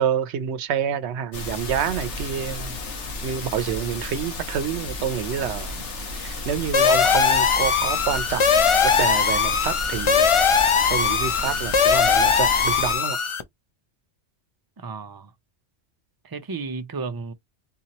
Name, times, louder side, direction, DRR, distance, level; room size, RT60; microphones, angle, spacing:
voice 1, 0.0-2.8 3.2-5.8 6.1-10.3 10.9-13.2, right 8 dB, 75° right, 0.9 m, -28 dB
sound 1, 1.3-13.0, left 2 dB, 90° left, 1.4 m, -33 dB
sound 2, 6.7-13.4, left 6 dB, 50° left, 0.4 m, -20 dB
voice 2, 14.8-15.3 16.2-17.3, right 4 dB, 35° right, 0.3 m, -33 dB
3.9 x 2.8 x 2.8 m
omnidirectional pair, 1.2 m